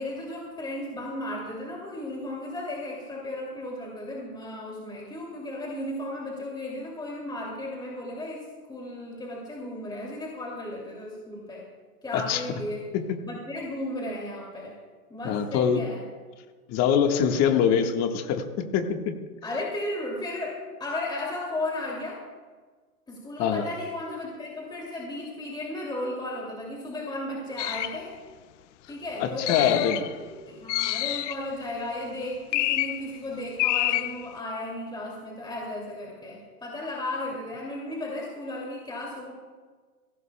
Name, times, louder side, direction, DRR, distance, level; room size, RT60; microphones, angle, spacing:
voice 1, 0.0-11.7 12.0-12.9 13.2-14.8 15.1-16.0 19.4-22.2 23.1-28.2 28.9-39.3, left 1 dB, 10° left, -2 dB, 2.6 m, -35 dB
voice 2, 15.2-15.9 16.7-19.2 23.4-23.7 29.2-30.0, left 8 dB, 35° left, 5 dB, 1.6 m, -24 dB
sound 1, 27.6-28.0 29.5-30.1 30.7-31.4 32.5-33.1 33.6-34.3, left 16 dB, 50° left, 0.6 m, -27 dB
22.0 x 16.5 x 2.3 m, 1.4 s
hypercardioid pair, 120°, 45 cm